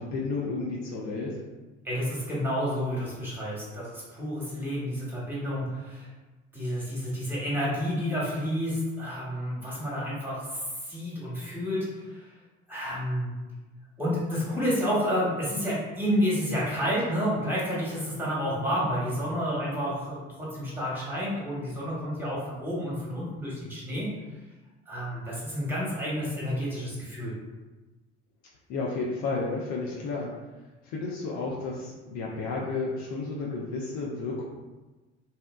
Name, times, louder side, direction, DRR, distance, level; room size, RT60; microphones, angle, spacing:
voice 1, 0.0-1.3 28.7-30.3 30.8-34.4, left 3 dB, 50° left, -3 dB, 0.5 m, -32 dB
voice 2, 1.8-6.1 6.5-12.3 12.7-13.3 14.0-24.1 24.9-27.3, equal, 5° right, -7 dB, 1.0 m, -30 dB
2.7 x 2.0 x 2.2 m, 1.2 s
figure-of-eight pair, 50°, 37 cm